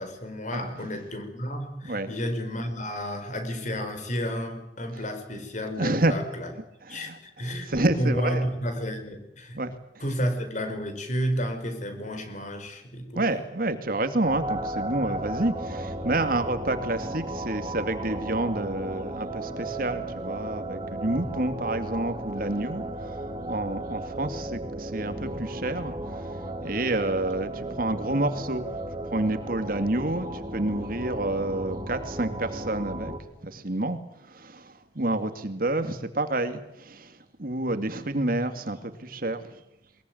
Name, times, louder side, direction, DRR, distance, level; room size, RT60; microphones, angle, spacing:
voice 1, 0.0-6.5 6.9-7.7 8.0-9.6 10.0-13.2, equal, 45° left, 7 dB, 5.2 m, -31 dB
voice 2, 0.5-0.9 1.8-2.1 5.7-6.2 6.8-8.5 9.5-9.8 13.1-28.8 29.1-33.1 33.4-39.6, right 2 dB, 55° right, 9 dB, 2.3 m, -29 dB
sound 1, 14.2-33.2, right 1 dB, 30° right, 2.9 m, -35 dB
22.0 x 21.5 x 9.3 m, 0.83 s
head